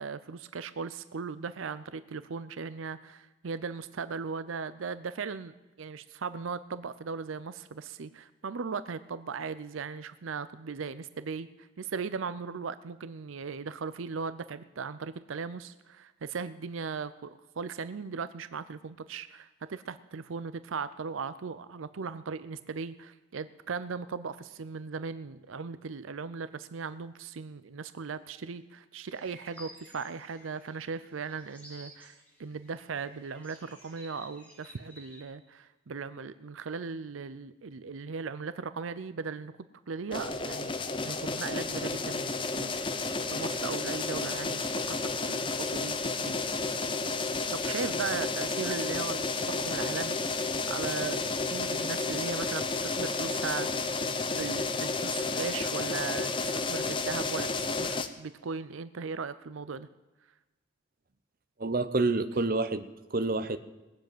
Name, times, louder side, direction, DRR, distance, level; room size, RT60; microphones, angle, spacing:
voice 1, 0.0-39.5 39.9-40.7 41.0-46.4 47.5-59.9, right 5 dB, 80° right, 14 dB, 0.5 m, -38 dB
sound 1, 29.0-35.2, equal, 5° left, 3.5 m, -54 dB
sound 2, 40.1-58.1, left 3 dB, 25° left, 0.8 m, -32 dB
voice 2, 61.6-63.6, right 3 dB, 45° right, 11 dB, 0.8 m, -28 dB
19.5 x 7.6 x 9.1 m, 1.1 s
head